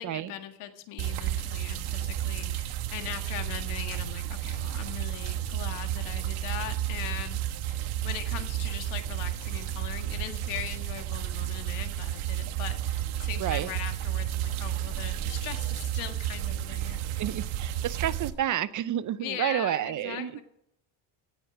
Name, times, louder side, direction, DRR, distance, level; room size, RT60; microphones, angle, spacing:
voice 1, 0.0-17.2 19.2-20.4, left 11 dB, 80° left, 6 dB, 1.9 m, -40 dB
sound 1, 1.0-18.3, right 12 dB, 75° right, 1.4 m, -32 dB
voice 2, 13.4-13.7 17.1-20.4, right 11 dB, 40° right, 17 dB, 0.5 m, -30 dB
17.5 x 8.0 x 4.9 m, 0.81 s
cardioid pair, 125°, 49 cm